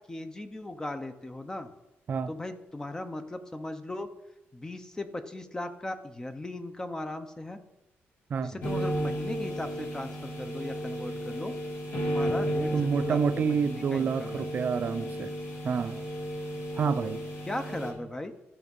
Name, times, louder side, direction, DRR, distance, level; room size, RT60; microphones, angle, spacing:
voice 1, 0.0-1.7 2.3-4.1 4.5-7.6 8.4-11.5 11.9-14.5 17.5-18.3, left 1 dB, 15° left, 9 dB, 0.7 m, -38 dB
sound 1, 8.6-17.9, equal, 75° left, 3.6 m, -33 dB
voice 2, 12.7-15.3 15.6-16.0 16.8-17.2, right 6 dB, 40° right, 12 dB, 0.5 m, -28 dB
13.0 x 6.1 x 5.4 m, 0.96 s
cardioid pair, 140°, 4 cm